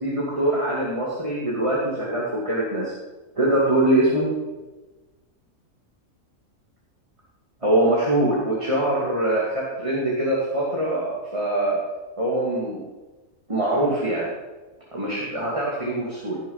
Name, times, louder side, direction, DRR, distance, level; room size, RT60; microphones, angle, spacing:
voice 1, 0.0-2.9 3.4-4.3 7.6-11.8 12.2-12.8 13.5-14.3 14.9-16.4, right 1 dB, 20° right, -5 dB, 2.6 m, -23 dB
17.0 x 7.0 x 5.7 m, 1.2 s
omnidirectional pair, 1.5 m